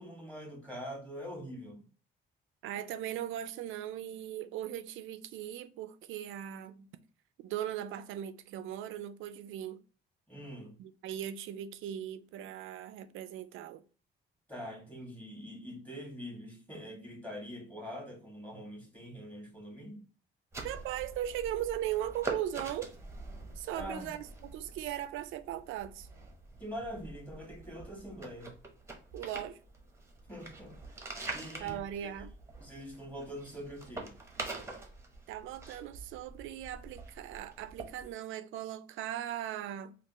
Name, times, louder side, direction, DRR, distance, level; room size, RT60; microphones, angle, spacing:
voice 1, 0.0-1.8 10.3-10.8 14.5-20.0 23.7-24.2 26.6-28.6 30.3-30.7 31.0-32.2 32.6-34.1, equal, 5° left, 1.7 m, -44 dB
voice 2, 2.6-6.9 7.4-9.8 10.8-13.8 20.6-22.9 23.6-26.1 29.1-29.6 31.6-32.3 35.3-39.9, right 11 dB, 85° right, 0.4 m, -38 dB
sound 1, 20.5-38.1, right 2 dB, 15° right, 0.8 m, -45 dB
3.3 x 2.4 x 2.9 m
cardioid pair, 90°, 20 cm